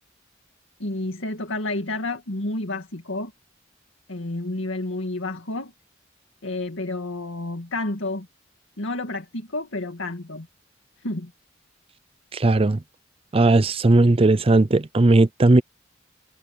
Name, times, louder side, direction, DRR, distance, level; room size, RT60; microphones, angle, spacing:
voice 1, 0.8-3.3 4.1-5.7 6.4-8.3 8.8-10.5 11.0-11.3, left 2 dB, 85° left, 2.2 m, -30 dB
voice 2, 12.3-12.8 13.3-15.6, right 2 dB, 30° right, 0.5 m, -17 dB
head